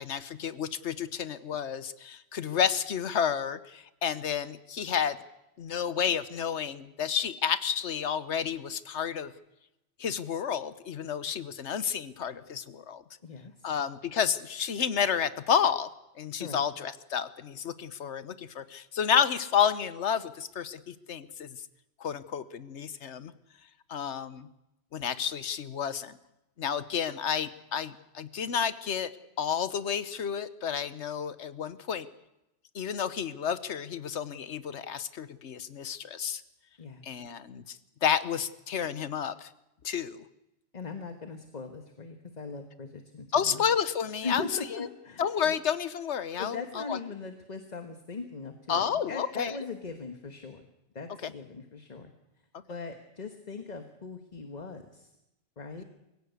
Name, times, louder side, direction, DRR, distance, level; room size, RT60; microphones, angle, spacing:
voice 1, 0.0-5.2 5.6-9.3 10.0-13.0 13.6-15.9 16.2-21.6 22.0-23.3 23.9-24.5 24.9-26.1 26.6-29.1 29.4-32.1 32.7-36.4 37.0-39.5 39.8-40.2 43.3-44.4 45.2-47.0 48.7-49.5 55.8-55.9, left 8 dB, 75° left, 14 dB, 1.3 m, -30 dB
voice 2, 13.2-13.7 16.4-16.6 36.8-37.0 40.7-43.6 44.2-45.5 46.4-50.6 50.9-52.1 52.7-55.1 55.6-55.8, left 4 dB, 40° left, 7 dB, 1.4 m, -40 dB
23.5 x 16.0 x 8.2 m, 0.91 s
omnidirectional pair, 1.2 m